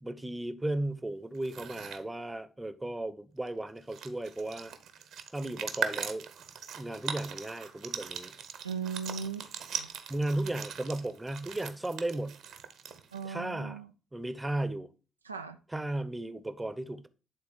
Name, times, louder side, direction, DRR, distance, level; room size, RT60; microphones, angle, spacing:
voice 1, 0.0-4.7 5.3-6.3 6.7-8.3 10.1-12.4 13.2-13.8 14.1-14.9 15.7-17.1, right 1 dB, 15° right, 0.8 m, -35 dB
sound 1, 1.3-2.0 3.5-3.6 3.8-13.3, right 8 dB, 60° right, 0.9 m, -40 dB
voice 2, 8.6-9.5 9.7-9.9 13.1-13.9 15.2-15.6, right 6 dB, 90° right, 0.3 m, -37 dB
8.8 x 4.0 x 4.3 m
figure-of-eight pair, 45°, 0 cm